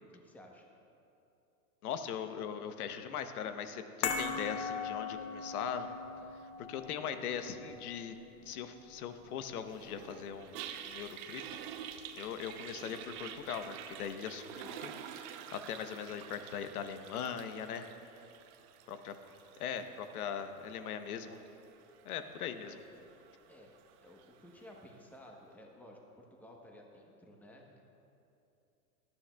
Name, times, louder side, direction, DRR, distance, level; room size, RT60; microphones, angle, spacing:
voice 1, 0.1-0.6 23.5-27.8, left 1 dB, 5° left, 0 dB, 1.0 m, -55 dB
voice 2, 1.8-5.9 6.6-8.2 8.4-11.6 12.2-17.9 18.9-19.1 19.6-21.4 22.0-22.8, left 8 dB, 70° left, 9 dB, 1.0 m, -40 dB
sound 1, 4.0-10.4 10.7-10.9, left 5 dB, 40° left, 1.1 m, -41 dB
Toilet flush, 9.7-24.9, right 9 dB, 40° right, 0.7 m, -49 dB
18.0 x 11.5 x 2.3 m, 2.7 s
hypercardioid pair, 130°, 46 cm